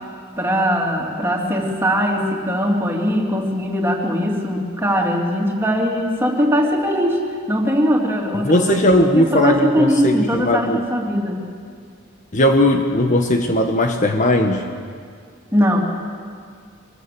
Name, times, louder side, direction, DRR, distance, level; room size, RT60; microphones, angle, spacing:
voice 1, 0.4-7.2 7.5-11.4 15.5-15.8, equal, 10° right, -1 dB, 3.2 m, -20 dB
voice 2, 8.4-10.8 12.3-14.7, left 1 dB, 40° left, 4 dB, 1.3 m, -17 dB
23.5 x 20.5 x 7.8 m, 2.1 s
head